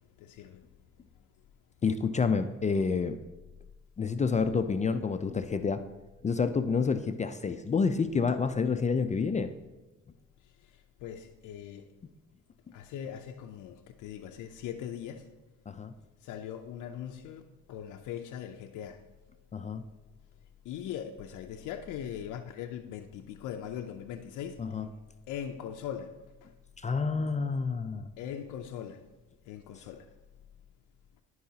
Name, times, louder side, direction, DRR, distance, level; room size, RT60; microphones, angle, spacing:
voice 1, 0.2-0.6 11.0-11.8 12.7-15.2 16.3-17.4 17.7-19.0 20.7-24.6 25.3-26.1 28.2-29.0 29.5-30.0, left 9 dB, 90° left, 0.5 m, -40 dB
voice 2, 1.8-3.2 4.0-5.8 6.2-9.5 15.7-15.9 19.5-19.8 24.6-24.9 26.8-28.1, left 5 dB, 25° left, 0.4 m, -28 dB
11.5 x 4.7 x 2.7 m
cardioid pair, 90°, 30 cm